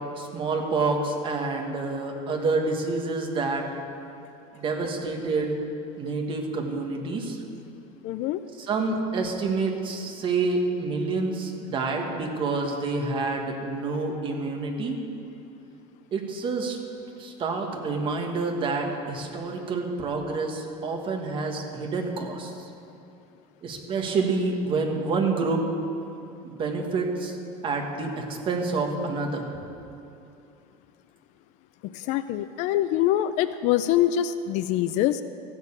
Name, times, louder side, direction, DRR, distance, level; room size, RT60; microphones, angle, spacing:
voice 1, 0.2-3.6 4.5-5.6 6.0-7.4 8.6-15.0 16.1-16.8 17.2-22.7 23.6-25.6 26.4-27.4 27.6-29.5, right 3 dB, 30° right, 2 dB, 1.5 m, -28 dB
voice 2, 8.0-8.4 31.8-35.2, left 12 dB, 45° left, 12 dB, 0.4 m, -24 dB
14.5 x 6.7 x 8.5 m, 2.7 s
cardioid pair, 165°, 17 cm